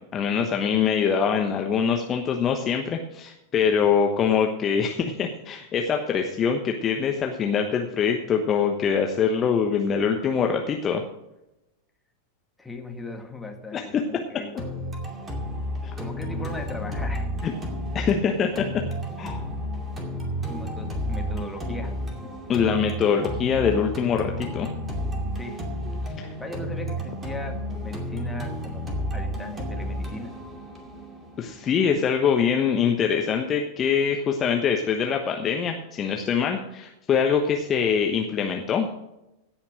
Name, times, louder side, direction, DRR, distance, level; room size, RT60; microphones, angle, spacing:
voice 1, 0.1-11.0 13.7-14.0 15.8-15.9 17.4-17.5 17.9-18.7 19.2-19.4 22.5-24.7 26.2-26.3 31.4-38.9, left 7 dB, 25° left, 3 dB, 1.1 m, -24 dB
voice 2, 12.6-14.5 16.0-17.6 20.5-21.9 25.3-25.7 26.4-28.8 29.1-30.4, left 2 dB, 5° left, 3 dB, 1.9 m, -38 dB
sound 1, 14.6-32.6, equal, 20° right, 2.4 m, -32 dB
16.5 x 5.8 x 6.2 m, 0.90 s
figure-of-eight pair, 90°, 0 cm